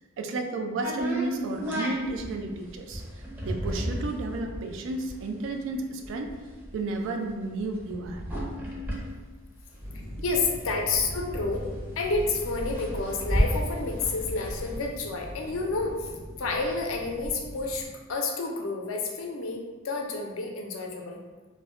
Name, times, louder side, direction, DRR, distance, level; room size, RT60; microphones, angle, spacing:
voice 1, 0.2-3.0 3.4-6.3 6.7-8.3, right 2 dB, 65° right, 4 dB, 0.3 m, -32 dB
sound 1, 0.8-10.3 10.6-10.7 10.9-14.9, equal, 10° right, 0.5 m, -33 dB
sound 2, 9.8-17.9, equal, 50° right, 0.8 m, -41 dB
voice 2, 10.2-11.7 12.0-21.2, left 3 dB, 75° left, 1 dB, 0.5 m, -30 dB
2.1 x 2.1 x 3.6 m, 1.3 s
head